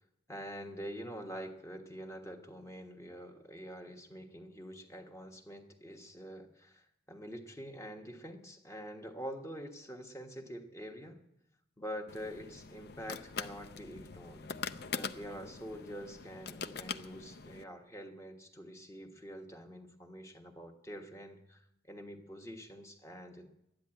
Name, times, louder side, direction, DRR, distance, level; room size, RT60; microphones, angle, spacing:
voice 1, 0.3-11.2 11.8-14.5 14.9-23.5, equal, 15° left, 3 dB, 1.4 m, -46 dB
sound 1, 12.1-17.6, left 5 dB, 55° left, 0.6 m, -43 dB
12.5 x 10.5 x 9.0 m, 0.81 s
head